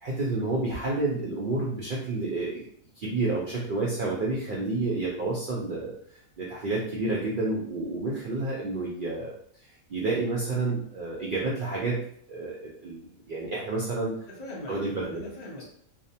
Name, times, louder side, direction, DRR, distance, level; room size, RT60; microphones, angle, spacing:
voice 1, 0.0-2.7 3.0-5.9 6.4-9.3 9.6-12.0 12.3-14.1 14.7-15.2, right 2 dB, 85° right, -4 dB, 0.4 m, -30 dB
voice 2, 14.3-15.7, left 1 dB, 45° left, -3 dB, 0.6 m, -41 dB
2.5 x 2.0 x 2.7 m, 0.64 s
omnidirectional pair, 1.5 m